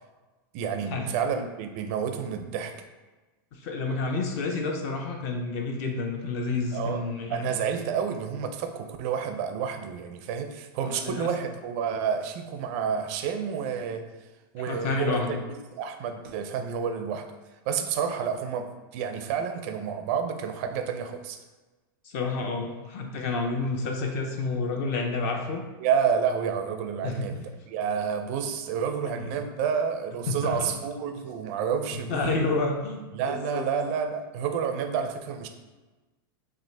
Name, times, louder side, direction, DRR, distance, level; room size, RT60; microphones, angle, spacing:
voice 1, 0.5-2.8 6.7-7.0 7.3-14.0 14.5-15.4 15.7-17.3 17.7-21.4 25.8-32.6 33.1-35.5, right 7 dB, 35° right, 6 dB, 0.4 m, -29 dB
voice 2, 3.5-7.5 10.8-11.3 14.7-15.4 22.0-25.6 27.0-27.3 29.1-29.3 30.3-30.8 32.1-33.7, left 3 dB, 40° left, 2 dB, 0.6 m, -29 dB
6.0 x 2.4 x 3.3 m, 1.2 s
supercardioid pair, 165°, 12 cm